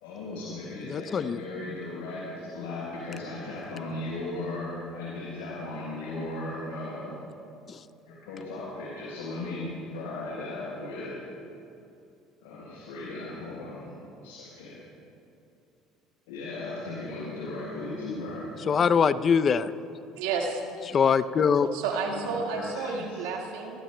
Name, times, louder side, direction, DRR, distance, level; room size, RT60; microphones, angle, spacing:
voice 1, 0.0-7.2 8.1-11.2 12.4-14.8 16.3-18.5 20.8-21.0 21.8-23.2, left 2 dB, 85° left, -8 dB, 4.0 m, -37 dB
voice 2, 0.9-1.4 7.7-7.8 18.7-19.7 20.9-21.8, left 6 dB, 40° left, 14 dB, 0.5 m, -23 dB
voice 3, 20.2-20.6 21.7-23.8, right 5 dB, 85° right, 0 dB, 1.7 m, -31 dB
28.0 x 13.0 x 2.2 m, 2.7 s
supercardioid pair, 80°, 0 cm